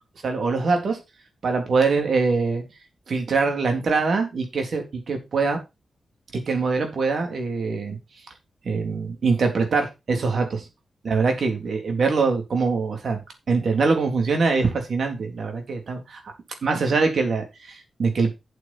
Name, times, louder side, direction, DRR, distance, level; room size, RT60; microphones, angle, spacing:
voice 1, 0.2-1.0 1.4-2.6 3.1-5.6 6.3-8.0 8.6-10.6 11.0-13.2 13.5-16.2 16.6-18.3, right 4 dB, 70° right, 4 dB, 3.7 m, -23 dB
8.2 x 8.2 x 4.6 m, 0.24 s
cardioid pair, 60°, 0 cm